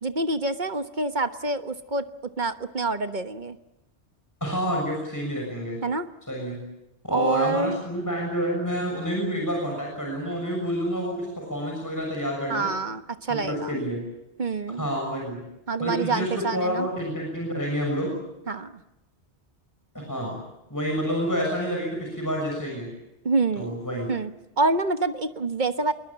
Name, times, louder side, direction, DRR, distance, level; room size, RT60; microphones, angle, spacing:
voice 1, 0.0-2.0 2.4-3.6 5.8-6.1 7.1-7.8 12.5-13.8 14.4-14.9 15.7-16.9 18.5-18.8 23.2-23.7 24.1-24.3 24.6-25.9, right 3 dB, 45° right, 8 dB, 1.3 m, -27 dB
voice 2, 4.4-5.8 6.3-6.6 7.0-12.7 13.3-14.0 14.8-15.4 15.8-18.1 19.9-20.4 20.7-22.9 23.6-24.1, equal, 15° left, 0 dB, 6.7 m, -28 dB
27.5 x 21.5 x 8.7 m, 0.91 s
omnidirectional pair, 1.1 m